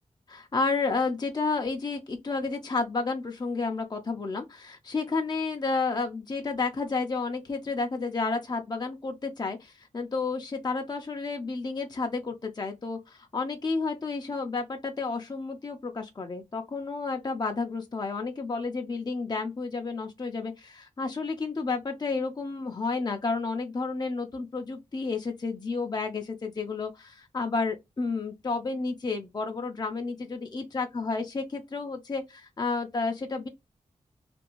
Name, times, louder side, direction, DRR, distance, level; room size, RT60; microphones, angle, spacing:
voice 1, 0.3-33.5, left 4 dB, 35° left, 0.5 m, -31 dB
2.5 x 2.2 x 2.9 m
cardioid pair, 45°, 13 cm